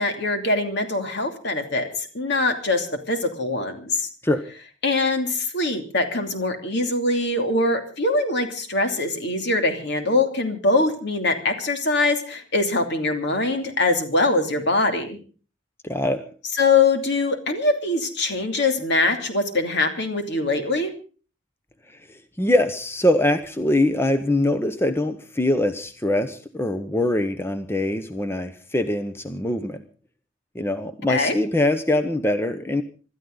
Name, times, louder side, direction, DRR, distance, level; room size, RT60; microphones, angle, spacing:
voice 1, 0.0-4.1 4.8-15.2 16.5-20.9 31.1-31.4, left 2 dB, 60° left, 5 dB, 2.8 m, -23 dB
voice 2, 15.8-16.3 21.9-29.8 30.5-32.8, left 1 dB, 10° left, 9 dB, 0.8 m, -23 dB
26.0 x 13.0 x 3.9 m, 0.39 s
head